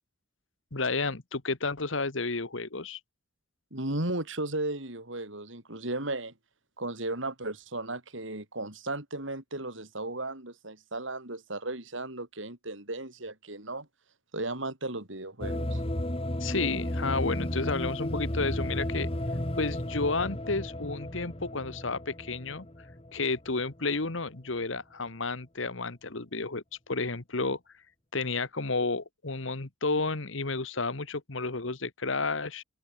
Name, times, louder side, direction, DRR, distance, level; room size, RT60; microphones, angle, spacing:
voice 1, 0.7-3.0 16.4-19.1 19.6-22.7 23.1-27.6 28.1-32.6, left 3 dB, 75° left, 1.7 m, -31 dB
voice 2, 3.7-6.3 6.8-13.9 14.3-15.8, right 2 dB, 70° right, 5.2 m, -35 dB
sound 1, 15.4-23.6, left 1 dB, 30° left, 2.0 m, -33 dB
open air
head